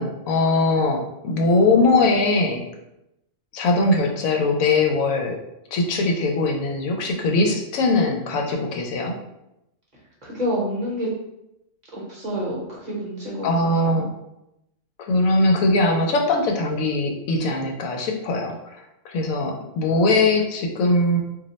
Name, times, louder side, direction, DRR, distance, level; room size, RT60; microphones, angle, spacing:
voice 1, 0.0-2.7 3.5-5.4 5.7-9.2 13.4-14.1 15.0-21.2, left 2 dB, 85° left, 2 dB, 1.0 m, -21 dB
voice 2, 10.2-11.1 11.9-14.0, equal, 40° right, -6 dB, 0.8 m, -28 dB
2.5 x 2.1 x 3.9 m, 0.87 s
omnidirectional pair, 1.4 m